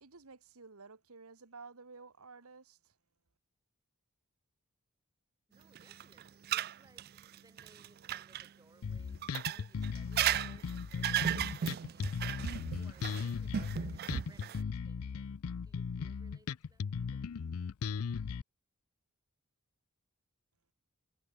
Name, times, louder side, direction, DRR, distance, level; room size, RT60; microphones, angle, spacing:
voice 1, 0.0-2.9, right 4 dB, 75° right, 1.5 m, -53 dB
voice 2, 5.5-12.2 12.6-15.3 15.7-17.3, right 2 dB, 15° right, 7.6 m, -66 dB
sound 1, 5.8-8.5 9.2-14.6, right 10 dB, 45° right, 0.3 m, -35 dB
Bass guitar, 8.8-18.4, left 6 dB, 75° left, 0.5 m, -38 dB
head